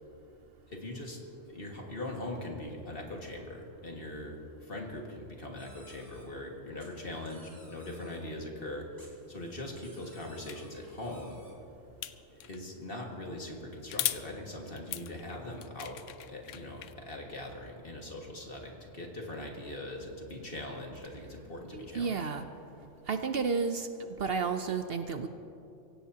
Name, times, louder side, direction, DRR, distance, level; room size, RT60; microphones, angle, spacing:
voice 1, 0.7-1.2 1.5-4.4 4.6-8.9 9.3-11.4 12.3-22.3, left 1 dB, 50° left, 0 dB, 2.1 m, -41 dB
sound 1, 5.6-6.2 6.8-8.2 9.0-11.5, equal, 15° right, 4.2 m, -58 dB
sound 2, 10.5-10.6 12.0-12.6 13.9-14.2 14.8-16.9, left 11 dB, 80° left, 1.0 m, -37 dB
voice 2, 21.7-22.4 23.1-23.9 24.2-25.3, right 5 dB, 55° right, 7 dB, 0.8 m, -31 dB
24.5 x 17.0 x 2.8 m, 2.8 s
omnidirectional pair, 1.3 m